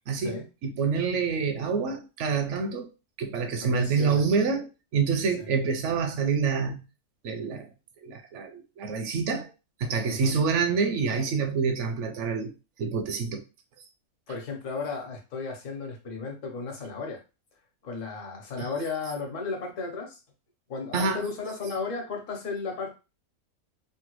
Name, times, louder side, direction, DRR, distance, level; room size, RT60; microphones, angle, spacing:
voice 1, 0.1-2.9 3.2-6.8 7.2-7.7 8.0-9.5 9.8-12.5 12.8-13.4 18.6-18.7 20.9-21.2, right 5 dB, 65° right, 0.8 m, -27 dB
voice 2, 3.6-4.2 5.4-5.5 10.0-10.4 14.3-17.2 17.8-20.2 20.7-23.0, left 4 dB, 65° left, 1.2 m, -34 dB
3.2 x 2.2 x 3.0 m
omnidirectional pair, 1.5 m